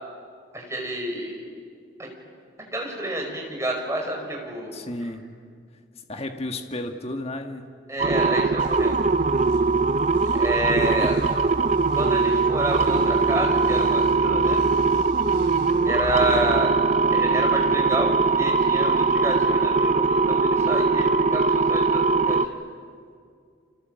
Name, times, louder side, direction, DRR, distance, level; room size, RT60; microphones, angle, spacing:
voice 1, 0.5-1.4 2.0-2.1 2.7-4.8 7.9-9.0 10.4-11.1 11.9-14.6 15.8-16.7 17.1-22.6, right 1 dB, 15° right, 1 dB, 5.1 m, -29 dB
voice 2, 4.7-5.2 6.1-7.7 10.8-11.4, left 1 dB, 30° left, 5 dB, 1.7 m, -33 dB
sound 1, 8.0-22.5, right 4 dB, 40° right, 0.7 m, -21 dB
sound 2, 8.6-16.5, left 2 dB, 80° right, 4.8 m, -37 dB
29.0 x 25.5 x 7.9 m, 2.2 s
head